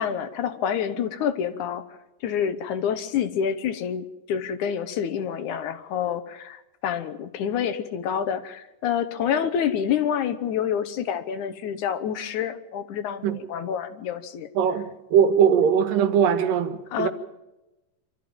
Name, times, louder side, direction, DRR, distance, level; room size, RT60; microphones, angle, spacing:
voice 1, 0.0-1.8 2.2-14.5 15.5-15.7 16.9-17.1, left 8 dB, 70° left, 11 dB, 2.4 m, -28 dB
voice 2, 14.6-17.1, right 8 dB, 85° right, 9 dB, 3.1 m, -21 dB
25.5 x 13.5 x 8.8 m, 1.0 s
omnidirectional pair, 3.8 m